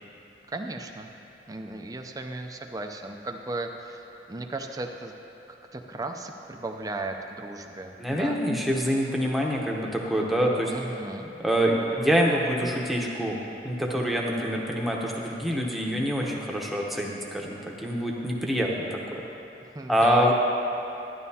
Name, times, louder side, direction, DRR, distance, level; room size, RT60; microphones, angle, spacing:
voice 1, 0.5-1.1 1.5-5.1 5.7-8.4 10.7-11.3 19.6-20.3, right 2 dB, 20° right, 4 dB, 0.5 m, -36 dB
voice 2, 8.0-10.7 11.4-13.4 13.6-19.0 19.9-20.3, equal, ahead, -2 dB, 0.9 m, -25 dB
12.5 x 10.5 x 2.8 m, 3.0 s
head